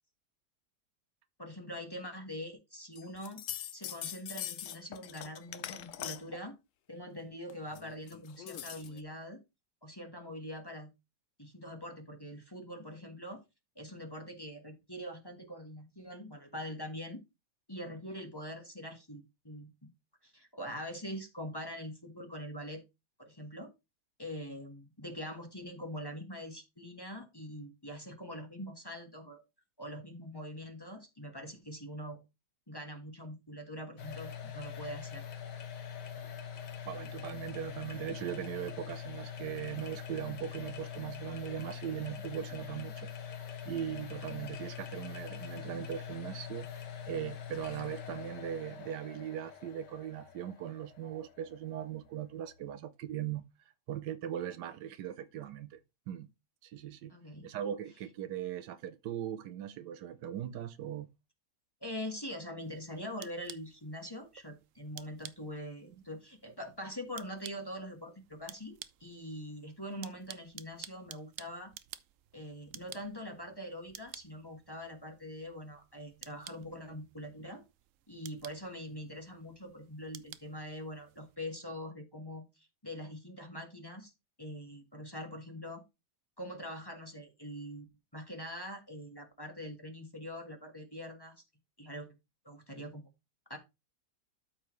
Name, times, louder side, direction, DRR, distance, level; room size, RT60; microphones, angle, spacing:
voice 1, 1.4-3.4 3.7-6.5 6.9-9.4 9.8-10.9 11.4-13.4 13.7-17.2 17.7-19.7 20.2-22.8 23.2-23.7 24.2-29.4 29.8-32.2 32.7-35.3 57.1-57.5 61.8-71.7 72.3-77.6 78.1-84.1 84.4-85.8 86.4-87.9 88.1-91.3 91.8-92.1 92.4-93.0 93.5-93.6, equal, 15° left, 1.4 m, -43 dB
sound 1, 3.0-6.4 7.5-9.0, left 11 dB, 65° left, 0.8 m, -42 dB
sound 2, 34.0-52.7, left 8 dB, 85° left, 1.8 m, -44 dB
voice 2, 36.9-43.1 43.6-46.7 47.1-53.4 53.9-55.8 56.1-56.3 56.6-57.1 57.4-61.1, right 10 dB, 85° right, 1.3 m, -39 dB
sound 3, 62.6-81.4, right 11 dB, 65° right, 0.8 m, -53 dB
12.5 x 4.6 x 3.1 m
omnidirectional pair, 1.8 m